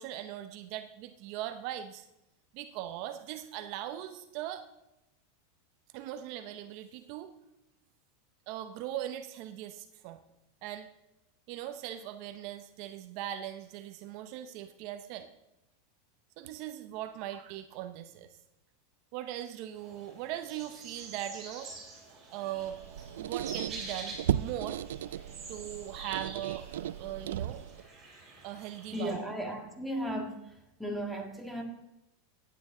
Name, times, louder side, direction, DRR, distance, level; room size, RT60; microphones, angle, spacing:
voice 1, 0.0-2.0 2.5-4.7 5.9-7.3 8.5-10.2 10.6-10.9 11.5-15.3 16.4-18.3 19.1-21.7 22.3-22.8 23.2-24.8 25.5-26.7 27.0-27.6 28.4-29.2, right 12 dB, 50° right, 9 dB, 0.7 m, -40 dB
sound 1, 19.8-29.1, right 3 dB, 30° right, 5.0 m, -47 dB
Squeak, 22.6-27.9, right 11 dB, 90° right, 0.3 m, -36 dB
voice 2, 28.9-30.5 30.8-31.6, equal, ahead, 3 dB, 1.7 m, -35 dB
15.5 x 9.6 x 3.8 m, 0.92 s
supercardioid pair, 150°, 0 cm